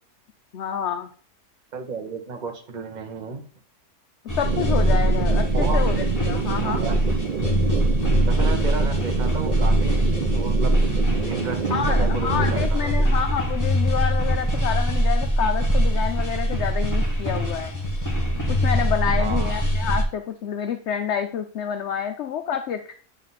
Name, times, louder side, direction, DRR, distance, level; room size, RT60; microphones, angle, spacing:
voice 1, 0.5-1.1 4.4-6.8 11.7-17.7 18.5-22.9, left 8 dB, 65° left, 7 dB, 0.7 m, -28 dB
voice 2, 1.7-3.4 5.5-5.8 6.4-7.0 8.3-10.8 11.3-13.1 19.2-19.7, right 4 dB, 35° right, 4 dB, 0.9 m, -33 dB
sound 1, 4.3-20.0, equal, 10° left, 1.5 m, -22 dB
sound 2, 4.4-12.7, right 7 dB, 70° right, 0.4 m, -28 dB
9.2 x 3.4 x 4.1 m, 0.44 s
omnidirectional pair, 1.6 m